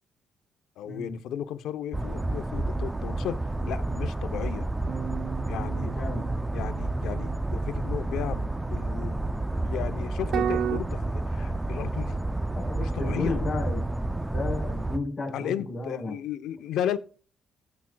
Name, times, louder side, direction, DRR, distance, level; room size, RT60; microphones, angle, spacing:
voice 1, 0.8-4.7 5.5-5.9 6.5-9.2 9.6-12.3 12.8-13.4 15.3-17.0, left 10 dB, 85° left, 0.8 m, -34 dB
sound 1, 1.9-15.0, right 2 dB, 10° right, 0.5 m, -30 dB
sound 2, 4.9-9.0 10.3-10.8, right 8 dB, 75° right, 0.7 m, -34 dB
voice 2, 5.8-6.3 12.5-13.8 14.3-16.2, left 3 dB, 25° left, 4.8 m, -33 dB
15.0 x 5.9 x 2.3 m
cardioid pair, 90°, 0 cm